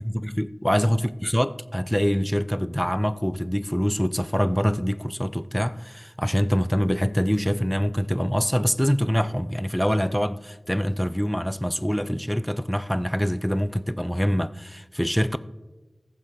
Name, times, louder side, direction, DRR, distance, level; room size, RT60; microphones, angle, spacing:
voice 1, 0.1-15.4, equal, 5° left, 0.4 m, -24 dB
15.5 x 7.2 x 3.9 m
cardioid pair, 40°, 0 cm